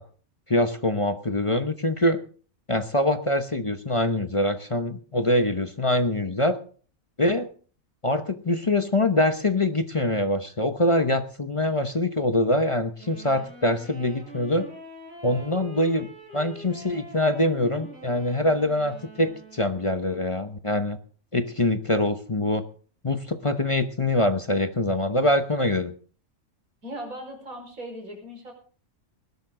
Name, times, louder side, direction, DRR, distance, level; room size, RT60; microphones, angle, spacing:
voice 1, 0.5-2.2 2.7-6.6 7.2-7.5 8.0-14.7 15.2-21.0 21.3-22.6 23.0-25.9, left 1 dB, 25° left, 9 dB, 0.9 m, -24 dB
Wind instrument woodwind instrument, 13.0-20.2, right 1 dB, 60° right, 7.2 m, -45 dB
voice 2, 26.8-28.5, right 1 dB, 80° right, 3 dB, 5.4 m, -38 dB
19.5 x 12.5 x 3.8 m, 0.41 s
omnidirectional pair, 1.4 m